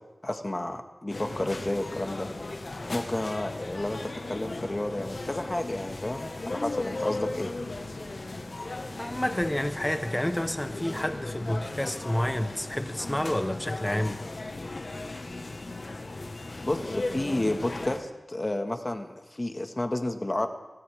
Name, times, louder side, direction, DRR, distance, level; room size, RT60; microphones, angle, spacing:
voice 1, 0.2-2.3 2.9-7.5 16.6-20.5, left 1 dB, 35° left, 5 dB, 1.7 m, -31 dB
sound 1, 1.1-18.0, left 2 dB, 65° left, 1.5 m, -37 dB
voice 2, 9.0-14.2, left 1 dB, 15° left, 8 dB, 1.2 m, -29 dB
26.5 x 12.5 x 3.6 m, 1.2 s
wide cardioid pair, 45°, 0 cm